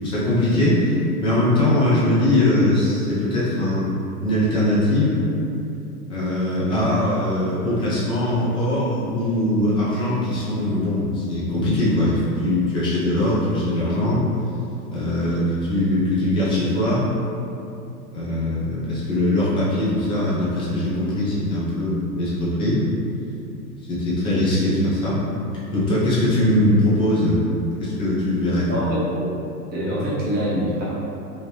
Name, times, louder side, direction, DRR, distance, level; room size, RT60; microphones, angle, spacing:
voice 1, 0.0-0.9 1.2-3.9 4.2-5.2 6.1-14.2 14.9-17.1 18.1-22.8 23.9-25.2 25.7-27.4 27.8-28.7, left 1 dB, 10° left, -8 dB, 0.4 m, -21 dB
voice 2, 28.7-29.3 29.7-30.8, equal, 20° right, -8 dB, 0.8 m, -25 dB
2.7 x 2.7 x 3.2 m, 2.7 s
hypercardioid pair, 115°, 47 cm